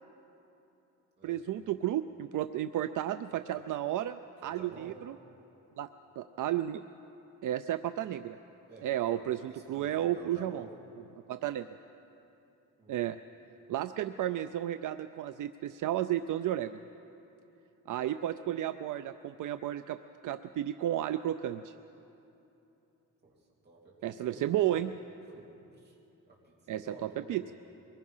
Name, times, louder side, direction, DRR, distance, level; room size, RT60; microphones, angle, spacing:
voice 1, 1.2-5.1 5.8-5.9 6.2-6.8 7.4-8.4 8.8-10.6 11.3-11.7 12.9-13.2 13.7-16.8 17.9-20.0 20.2-21.7 24.0-24.9 26.7-27.5, right 12 dB, 70° right, 11 dB, 0.5 m, -33 dB
voice 2, 4.4-5.0 8.7-10.7 12.8-13.0 23.2-24.5 25.2-26.0 26.3-27.4, right 2 dB, 30° right, -4 dB, 3.3 m, -52 dB
23.5 x 20.5 x 5.6 m, 2.9 s
wide cardioid pair, 165°, 32 cm